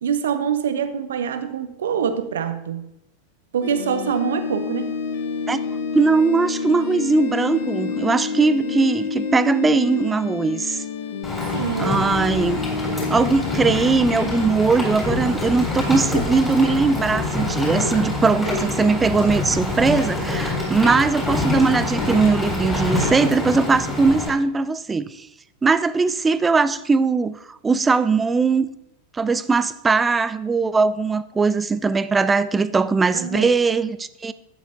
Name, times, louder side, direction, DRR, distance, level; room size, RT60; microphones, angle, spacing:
voice 1, 0.0-2.9 3.5-4.9 11.5-12.0 33.1-33.7, right 7 dB, 60° right, 0.8 m, -25 dB
sound 1, 3.6-14.5, left 5 dB, 55° left, 1.0 m, -28 dB
voice 2, 5.9-10.8 11.8-12.6 13.1-25.3 25.6-28.7 29.1-34.3, right 4 dB, 15° right, 0.4 m, -20 dB
Rain, 11.2-24.3, left 2 dB, 10° left, 3.7 m, -25 dB
12.0 x 9.3 x 2.5 m
figure-of-eight pair, 90°, 0 cm